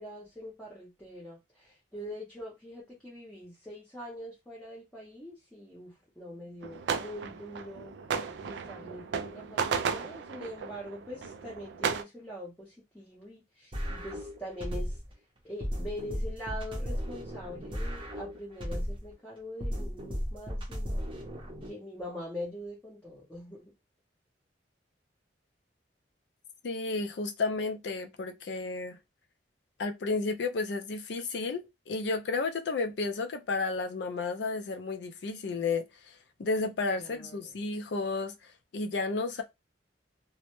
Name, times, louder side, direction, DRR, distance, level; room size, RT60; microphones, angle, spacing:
voice 1, 0.0-7.9 8.5-15.0 15.4-21.0 21.6-23.7 37.0-37.6, equal, 10° left, 0.6 m, -43 dB
sound 1, 6.6-12.0, right 6 dB, 70° right, 0.3 m, -34 dB
sound 2, 13.7-15.1 15.6-19.1 19.6-21.7, equal, 30° right, 0.6 m, -35 dB
voice 2, 26.6-29.0 29.8-39.4, left 3 dB, 70° left, 0.4 m, -32 dB
2.1 x 2.0 x 2.9 m
head